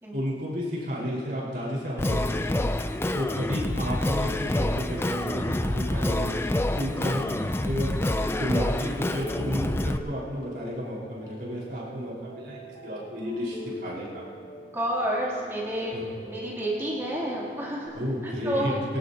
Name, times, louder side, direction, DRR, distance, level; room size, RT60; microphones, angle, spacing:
voice 1, 0.1-2.5 3.1-7.9 8.4-14.2 15.9-16.0 17.9-18.7, equal, 60° right, -5 dB, 4.8 m, -32 dB
Singing, 2.0-10.0, left 1 dB, 15° left, 0.4 m, -27 dB
Piano, 9.2-17.9, right 1 dB, 45° left, 4.2 m, -45 dB
voice 2, 14.7-16.0 16.2-17.9 18.2-18.8, right 1 dB, 15° right, -6 dB, 3.1 m, -29 dB
22.0 x 18.5 x 2.9 m, 2.2 s
head